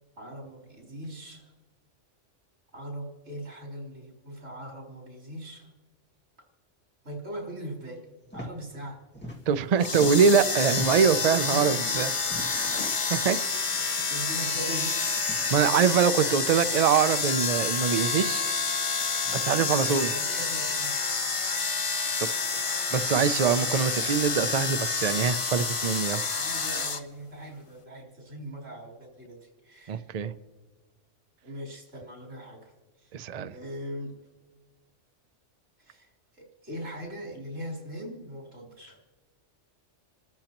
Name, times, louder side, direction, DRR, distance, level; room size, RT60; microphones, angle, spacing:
voice 1, 0.2-1.5 2.7-5.7 7.0-8.1 8.3-9.0 9.2-9.4 11.5-12.5 13.7-15.0 19.6-21.1 26.3-30.1 31.4-33.2 33.5-34.1 35.8-39.0, equal, 85° right, -3 dB, 4.1 m, -40 dB
sound 1, 8.2-8.5 8.8-9.7 9.9-11.2 12.2-12.7 13.7-13.8 14.2-14.3 15.1-15.4 16.6-16.7 17.8-18.1 19.2-19.5, equal, 10° left, 2.0 m, -42 dB
voice 2, 9.5-12.1 13.1-13.4 15.5-18.5 19.3-20.1 22.5-26.2 29.9-30.3 33.1-33.5, right 7 dB, 55° right, 12 dB, 0.4 m, -24 dB
sound 2, 9.8-27.0, left 4 dB, 35° left, 0.6 m, -28 dB
sound 3, 12.5-13.1 15.0-16.2, left 6 dB, 80° left, 1.2 m, -43 dB
28.0 x 13.5 x 3.0 m, 1.3 s
omnidirectional pair, 1.3 m